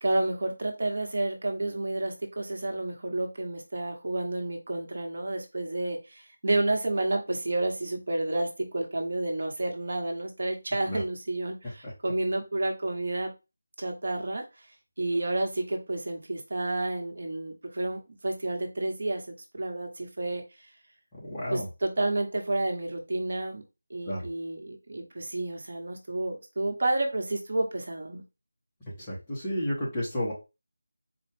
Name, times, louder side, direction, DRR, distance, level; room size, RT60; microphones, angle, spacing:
voice 1, 0.0-13.3 13.8-14.7 15.0-20.7 21.5-23.6 23.9-28.2, right 2 dB, 50° right, 3 dB, 1.0 m, -30 dB
voice 2, 21.2-21.7 24.0-24.3 29.0-30.3, equal, 15° left, -6 dB, 1.0 m, -31 dB
4.2 x 2.3 x 3.4 m, 0.26 s
figure-of-eight pair, 175°, 0 cm